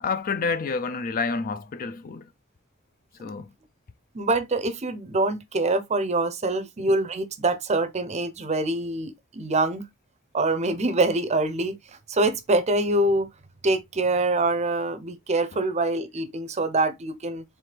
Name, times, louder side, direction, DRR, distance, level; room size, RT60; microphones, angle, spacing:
voice 1, 0.0-2.3 3.2-3.5 15.5-15.6, left 4 dB, 40° left, 0.4 m, -29 dB
voice 2, 4.1-9.8 10.3-11.8 12.1-13.3 13.6-17.4, right 2 dB, 30° right, 0.6 m, -25 dB
4.5 x 3.2 x 3.3 m
head